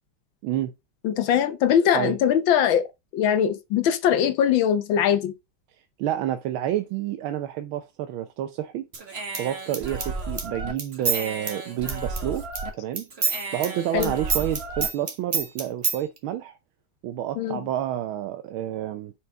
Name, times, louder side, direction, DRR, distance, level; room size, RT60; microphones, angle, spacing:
voice 1, 1.0-2.9 3.1-5.3 13.9-14.1 17.4-17.6, left 9 dB, 75° left, 1.5 m, -21 dB
voice 2, 6.0-8.9 9.4-12.5 12.7-13.1 13.5-16.5 17.0-19.1, right 12 dB, 85° right, 1.5 m, -29 dB
Human voice / Scissors, 8.9-12.7 13.0-16.0, right 4 dB, 35° right, 1.6 m, -29 dB
7.1 x 4.8 x 4.6 m
omnidirectional pair, 2.2 m